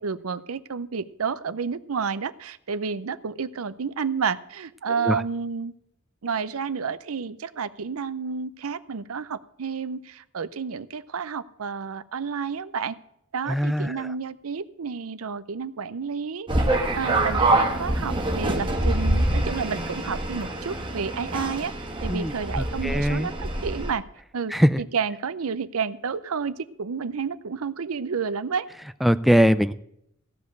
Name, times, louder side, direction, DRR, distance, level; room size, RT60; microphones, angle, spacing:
voice 1, 0.0-5.7 6.2-13.0 13.3-21.7 22.0-24.0 24.3-28.7, right 5 dB, 85° right, 15 dB, 0.6 m, -30 dB
voice 2, 13.5-14.0 22.1-23.3 24.5-24.8 29.0-29.7, equal, ahead, 13 dB, 0.4 m, -21 dB
sound 1, 16.5-23.9, right 1 dB, 25° right, 1.3 m, -25 dB
15.5 x 5.2 x 7.9 m, 0.75 s
head